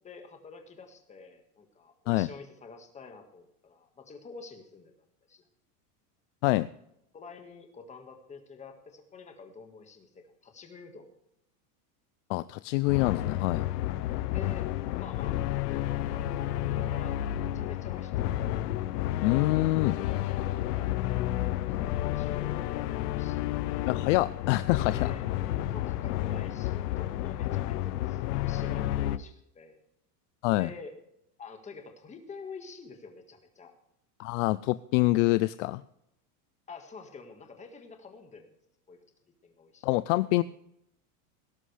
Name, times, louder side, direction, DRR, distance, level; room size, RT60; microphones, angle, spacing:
voice 1, 0.0-4.9 5.3-5.4 7.1-11.1 14.3-14.7 15.0-15.4 15.7-18.5 20.0-21.0 21.7-23.4 24.9-25.2 25.7-29.8 30.5-30.9 31.4-33.7 36.7-38.5 38.9-39.0 39.4-39.9, left 4 dB, 15° left, 5 dB, 1.7 m, -47 dB
voice 2, 12.3-13.7 19.2-20.0 23.8-25.1 30.4-30.7 34.2-35.8 39.8-40.4, left 19 dB, 55° left, 16 dB, 0.5 m, -26 dB
sound 1, 12.9-29.2, left 13 dB, 90° left, 0.8 m, -31 dB
18.5 x 11.0 x 3.3 m, 0.78 s
supercardioid pair, 160°, 45 cm